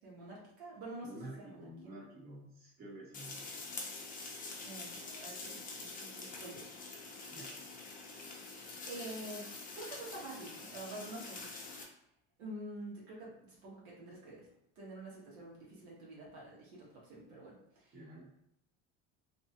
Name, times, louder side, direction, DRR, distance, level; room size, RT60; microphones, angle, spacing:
voice 1, 0.0-1.7 4.6-6.6 8.8-9.4 9.7-11.5 11.8-11.9 12.4-14.5 14.7-18.0, right 1 dB, 90° right, -5 dB, 1.3 m, -48 dB
voice 2, 1.0-3.4 7.3-7.6 17.9-18.3, right 1 dB, 30° right, -4 dB, 1.0 m, -50 dB
sound 1, 3.1-11.8, left 3 dB, 25° left, 0.6 m, -46 dB
2.7 x 2.3 x 2.8 m, 0.76 s
supercardioid pair, 120°, 31 cm